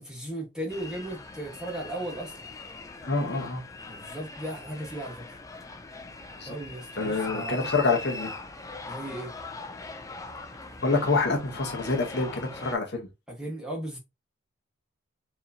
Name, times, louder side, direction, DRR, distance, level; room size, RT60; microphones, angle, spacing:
voice 1, 0.0-2.5 3.8-5.2 6.4-7.6 8.8-9.3 13.3-14.0, right 1 dB, 5° right, 1.3 m, -36 dB
sound 1, 0.7-12.8, left 3 dB, 15° left, 0.4 m, -41 dB
voice 2, 3.0-3.6 6.4-6.6 7.0-8.3 10.8-13.1, left 3 dB, 50° left, 1.0 m, -27 dB
4.7 x 3.1 x 2.7 m
head